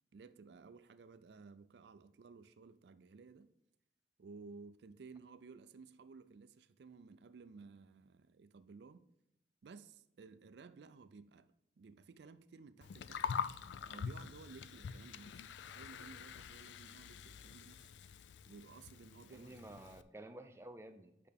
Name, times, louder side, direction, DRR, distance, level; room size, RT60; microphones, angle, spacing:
voice 1, 0.1-3.5 4.2-9.1 9.6-13.3 13.9-15.4 15.7-17.9 18.5-19.5, right 4 dB, 75° right, 0.4 m, -56 dB
Gurgling, 12.8-20.0, left 7 dB, 85° left, 0.3 m, -45 dB
voice 2, 19.3-21.3, right 1 dB, 15° right, 0.5 m, -52 dB
8.5 x 5.7 x 3.5 m
head